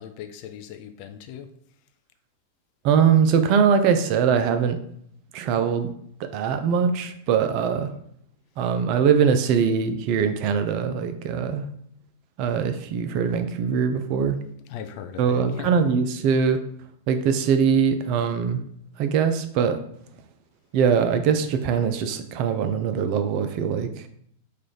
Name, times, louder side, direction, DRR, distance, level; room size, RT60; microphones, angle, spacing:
voice 1, 0.0-1.5 14.7-15.7, left 9 dB, 50° left, 8 dB, 0.4 m, -38 dB
voice 2, 2.8-4.8 5.3-5.9 6.2-7.9 8.6-11.7 12.4-14.4 15.2-16.6 17.1-18.6 19.0-19.8 20.7-24.1, right 7 dB, 45° right, 8 dB, 0.4 m, -22 dB
3.1 x 2.4 x 3.9 m, 0.67 s
figure-of-eight pair, 95°, 0 cm